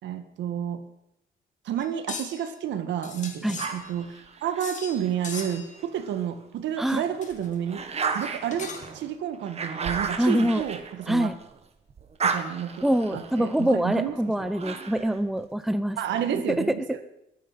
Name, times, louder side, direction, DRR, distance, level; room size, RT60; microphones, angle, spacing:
voice 1, 0.0-0.8 1.6-4.1 4.4-7.8 8.1-11.3 12.2-14.5 16.0-17.0, right 9 dB, 90° right, 9 dB, 1.7 m, -30 dB
sound 1, 1.8-2.5 3.0-4.2 4.6-5.0 5.2-5.8 6.9-7.5 8.2-9.0, left 5 dB, 40° left, 2.4 m, -39 dB
sound 2, 3.6-6.3 6.8-11.6 11.9-15.2, right 5 dB, 35° right, 1.6 m, -34 dB
voice 2, 10.2-10.6 11.1-11.3 12.8-16.0 16.3-16.4, equal, ahead, 11 dB, 0.7 m, -24 dB
22.0 x 9.6 x 5.8 m, 0.83 s
cardioid pair, 150°, 18 cm